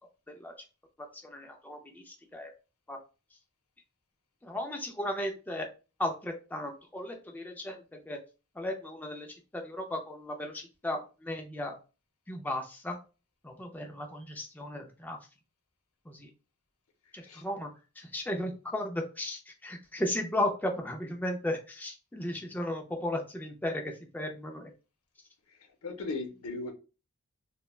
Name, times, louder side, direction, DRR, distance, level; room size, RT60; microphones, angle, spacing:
voice 1, 1.2-2.5 2.9-3.0 4.4-5.7 6.0-8.2 8.6-11.8 12.3-13.0 13.4-15.2 16.1-16.3 17.1-17.7 18.0-24.7, left 1 dB, 10° left, 2 dB, 0.3 m, -35 dB
voice 2, 25.8-26.7, left 3 dB, 85° left, 5 dB, 0.6 m, -37 dB
3.0 x 2.1 x 2.3 m, 0.32 s
head